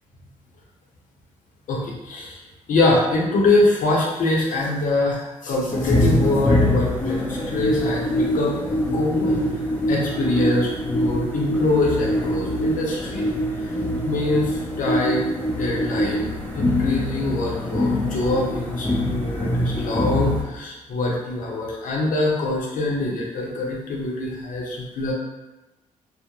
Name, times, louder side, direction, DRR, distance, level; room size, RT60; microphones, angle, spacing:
voice 1, 1.7-2.4 2.7-8.5 8.9-9.4 9.9-13.2 14.0-25.1, left 2 dB, 65° left, -3 dB, 0.7 m, -24 dB
sound 1, 5.7-20.4, left 1 dB, 15° left, 0.5 m, -24 dB
2.3 x 2.0 x 2.9 m, 1.1 s
supercardioid pair, 70°, 15 cm